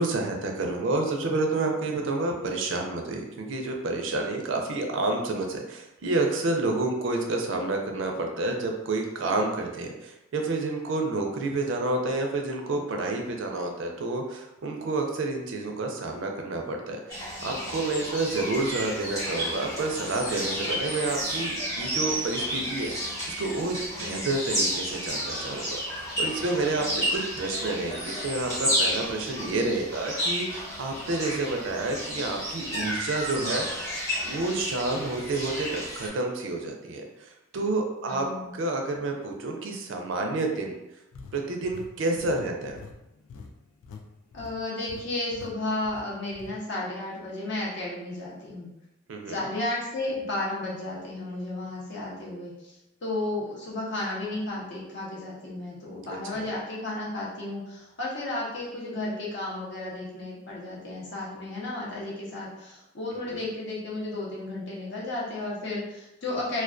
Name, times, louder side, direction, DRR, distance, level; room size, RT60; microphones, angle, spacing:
voice 1, 0.0-33.9 34.2-38.3 38.5-40.7 41.3-42.8 49.1-49.5 56.1-56.5 63.3-63.4, right 2 dB, 60° right, 2 dB, 0.4 m, -29 dB
sound 1, 17.1-36.1, equal, 15° left, 1.0 m, -31 dB
voice 2, 38.0-38.5 44.3-48.7 49.3-52.7 53.0-66.6, left 2 dB, 55° left, -5 dB, 0.7 m, -33 dB
sound 2, 41.1-44.1 44.3-44.6 44.9-45.0 45.3-45.5 45.9-46.5, left 4 dB, 75° left, 0.3 m, -45 dB
2.2 x 2.2 x 2.4 m, 0.92 s
head